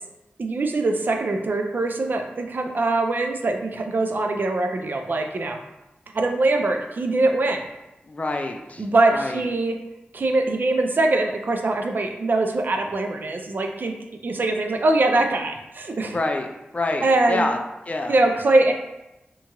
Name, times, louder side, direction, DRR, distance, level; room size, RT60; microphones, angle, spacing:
voice 1, 0.4-5.6 6.1-7.6 8.8-9.8 10.1-14.0 14.2-16.2 17.0-17.5 18.1-18.7, right 2 dB, 55° right, 3 dB, 0.4 m, -22 dB
voice 2, 8.1-8.9 9.1-9.4 16.1-16.5 16.7-17.6 17.9-18.2, left 2 dB, 35° left, 4 dB, 0.3 m, -26 dB
2.8 x 2.3 x 2.8 m, 0.95 s
wide cardioid pair, 65°, 4 cm